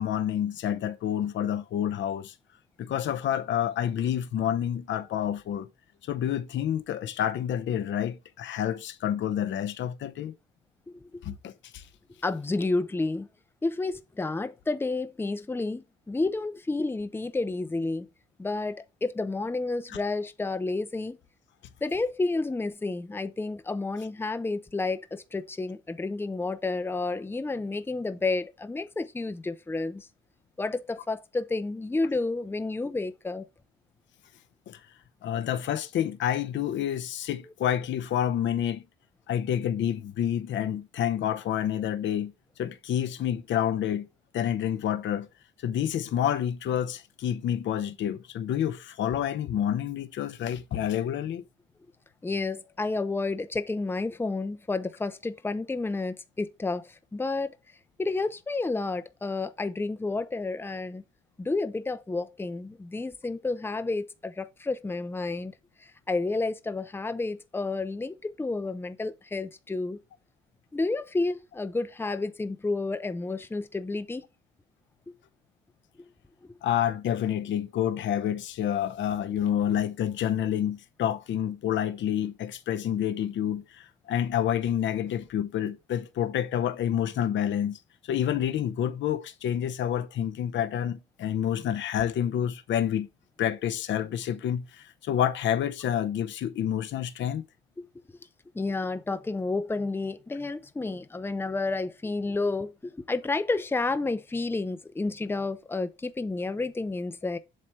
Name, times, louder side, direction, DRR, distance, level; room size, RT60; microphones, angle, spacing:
voice 1, 0.0-2.3 2.8-5.7 6.0-10.3 11.2-11.8 34.7-34.8 35.2-38.8 39.3-42.3 42.6-44.1 44.3-45.3 45.6-51.4 76.6-87.8 88.0-93.1 93.4-97.4, left 10 dB, 70° left, 0.8 m, -28 dB
voice 2, 10.9-11.2 12.2-13.3 13.6-18.1 18.4-21.2 21.8-30.1 30.6-33.5 52.2-57.6 58.0-61.0 61.4-65.5 65.8-70.0 70.7-74.2 76.4-76.5 97.8-97.9 98.5-107.4, left 3 dB, 10° left, 0.6 m, -30 dB
7.7 x 3.2 x 5.5 m
cardioid pair, 90°, 20 cm